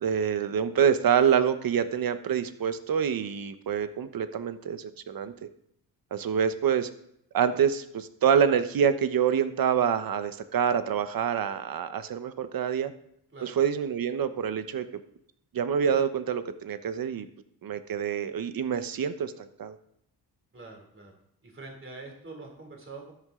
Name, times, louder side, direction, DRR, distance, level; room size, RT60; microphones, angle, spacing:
voice 1, 0.0-5.3 6.1-6.9 7.3-12.9 13.4-14.8 15.5-17.3 17.6-19.8, right 8 dB, 60° right, 11 dB, 1.1 m, -26 dB
voice 2, 20.5-21.1 21.4-23.1, right 3 dB, 30° right, 2 dB, 3.1 m, -44 dB
13.5 x 11.5 x 3.8 m, 0.72 s
cardioid pair, 105°, 39 cm